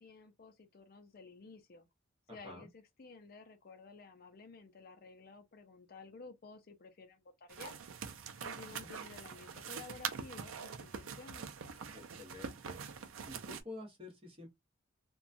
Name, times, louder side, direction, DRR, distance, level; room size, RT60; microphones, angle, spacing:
voice 1, 0.0-1.9 2.3-7.8 8.4-11.5, left 4 dB, 50° left, 0.5 m, -53 dB
voice 2, 2.3-2.7 8.5-8.9 11.9-12.8 13.3-14.5, left 2 dB, 30° right, 1.0 m, -50 dB
sound 1, 7.5-13.6, right 6 dB, 85° right, 0.4 m, -44 dB
2.9 x 2.2 x 2.6 m
head